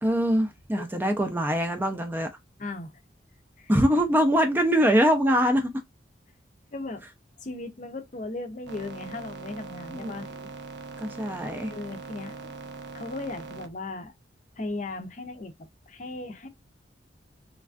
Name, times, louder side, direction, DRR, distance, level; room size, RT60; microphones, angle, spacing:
voice 1, 0.0-2.3 3.7-5.7 9.9-10.1 11.0-11.7, equal, 10° right, 0.4 m, -23 dB
voice 2, 2.6-2.9 3.6-3.7 6.7-7.0 7.4-10.3 11.7-12.5 12.9-14.1 14.6-16.5, left 2 dB, 40° left, 0.5 m, -37 dB
sound 1, 8.7-13.7, right 4 dB, 70° right, 0.6 m, -41 dB
3.2 x 2.3 x 2.4 m
head